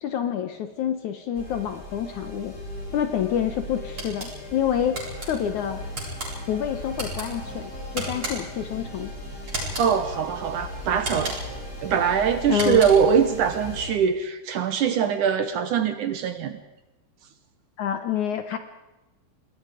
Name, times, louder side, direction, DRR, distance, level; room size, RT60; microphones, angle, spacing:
voice 1, 0.0-2.5 2.9-5.0 5.3-5.8 6.5-9.1 12.5-12.9 17.8-18.6, left 9 dB, 70° left, 8 dB, 2.0 m, -27 dB
Diamond-Scape, 1.3-13.9, left 1 dB, 15° left, 6.3 m, -38 dB
sound 1, 4.0-4.3 5.0-5.3 5.9-6.3 6.9-7.3 8.0-8.6 9.5-9.9 11.0-11.6 12.5-13.1, right 1 dB, 30° right, 8.9 m, -33 dB
voice 2, 9.8-11.4 11.8-16.6, right 7 dB, 65° right, 9 dB, 2.2 m, -22 dB
27.5 x 21.0 x 5.0 m, 1.0 s
omnidirectional pair, 4.5 m